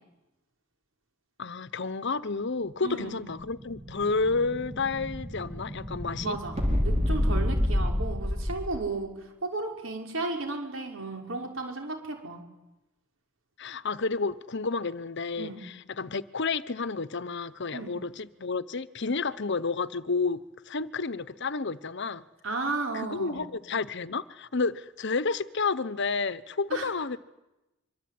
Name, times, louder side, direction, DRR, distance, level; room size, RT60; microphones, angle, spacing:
voice 1, 1.4-6.4 13.6-22.2 22.9-27.2, left 4 dB, 55° left, 1.0 m, -31 dB
Explosion, 2.8-8.9, left 1 dB, 30° right, 4.9 m, -29 dB
voice 2, 2.8-3.2 6.2-6.5 6.8-9.1 9.4-12.4 15.4-15.6 17.7-17.9 22.4-23.4 26.7-26.9, right 3 dB, 65° right, 5.9 m, -34 dB
25.5 x 24.5 x 9.6 m
head